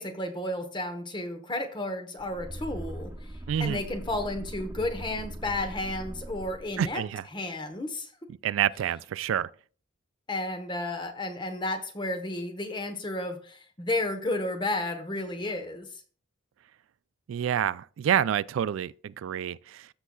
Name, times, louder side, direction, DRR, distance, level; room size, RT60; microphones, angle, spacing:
voice 1, 0.0-3.3 3.6-7.0 7.3-8.1 10.3-15.9, left 2 dB, 20° left, 1.0 m, -32 dB
sound 1, 2.2-7.1, right 1 dB, 15° right, 0.5 m, -40 dB
voice 2, 3.5-3.8 6.8-7.2 8.4-9.5 17.3-19.9, right 9 dB, 70° right, 0.3 m, -28 dB
14.5 x 5.5 x 2.3 m
head